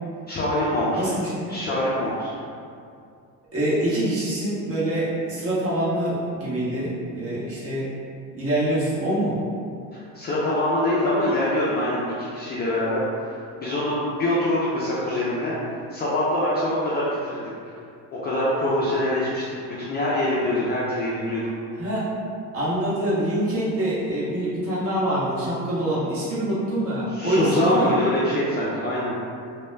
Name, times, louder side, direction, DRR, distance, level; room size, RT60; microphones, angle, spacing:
voice 1, 0.3-1.1 1.5-2.4 9.9-13.3 13.6-15.5 15.9-17.4 18.1-21.4 27.1-29.1, left 1 dB, 25° left, -8 dB, 0.3 m, -24 dB
voice 2, 0.9-1.6 3.5-7.9 8.4-9.4 21.8-22.1 22.5-27.9, right 1 dB, 35° right, -9 dB, 1.0 m, -25 dB
2.2 x 2.1 x 3.2 m, 2.4 s
supercardioid pair, 110°, 39 cm